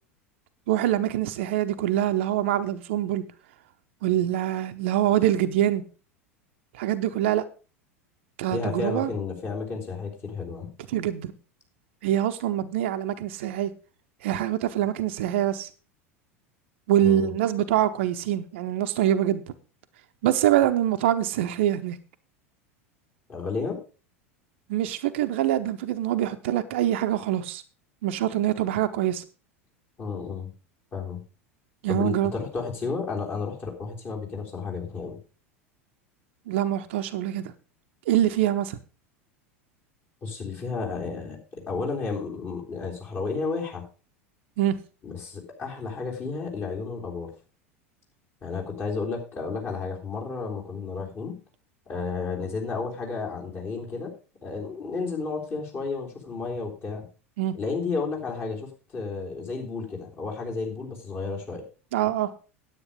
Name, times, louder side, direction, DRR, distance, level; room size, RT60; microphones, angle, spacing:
voice 1, 0.7-3.2 4.0-5.8 6.7-7.4 8.4-9.1 10.9-11.3 12.0-13.7 14.2-15.7 16.9-19.4 20.2-22.0 24.7-27.6 28.0-29.2 31.8-32.3 36.5-37.5 38.1-38.8 44.6-44.8 57.4-57.5 61.9-62.3, right 12 dB, 55° right, 0.8 m, -24 dB
voice 2, 8.5-10.7 17.0-17.3 23.3-23.8 30.0-30.5 30.9-31.2 31.9-35.2 40.2-43.8 45.0-47.3 48.4-51.4 51.9-54.1 54.4-57.1 57.5-61.6, left 4 dB, 30° left, 3.6 m, -32 dB
9.8 x 8.8 x 5.1 m
figure-of-eight pair, 80°, 7 cm